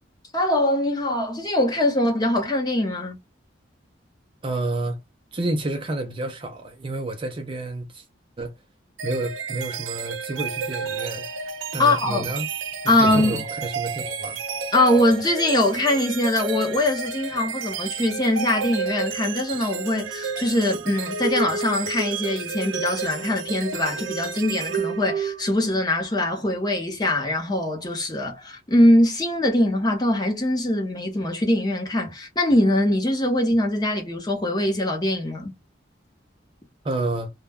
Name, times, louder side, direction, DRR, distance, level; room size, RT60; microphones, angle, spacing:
voice 1, 0.3-3.2 11.8-12.3 12.9-13.4 14.7-35.5, left 1 dB, 20° left, 0.7 m, -22 dB
voice 2, 4.4-5.0 5.3-8.0 8.4-8.5 9.0-11.3 11.7-12.5 12.8-14.4 36.8-37.3, right 2 dB, 25° right, 0.4 m, -29 dB
sound 1, 9.0-25.6, right 5 dB, 80° right, 0.5 m, -31 dB
2.2 x 2.1 x 3.4 m
head